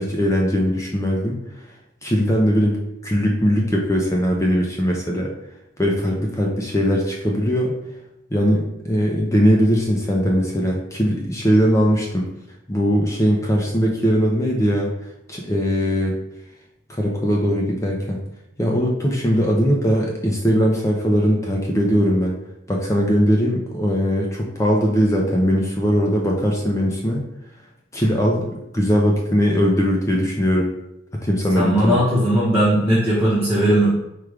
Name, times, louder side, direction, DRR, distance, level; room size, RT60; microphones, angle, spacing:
voice 1, 0.0-1.4 2.0-2.8 3.0-5.3 5.8-7.7 8.3-12.3 12.7-14.9 15.3-16.2 16.9-18.2 18.6-22.4 22.7-27.2 27.9-30.7 31.1-32.0, equal, 15° left, -1 dB, 0.5 m, -20 dB
voice 2, 31.6-33.9, right 1 dB, 10° right, -9 dB, 0.9 m, -18 dB
4.7 x 2.3 x 4.8 m, 0.86 s
head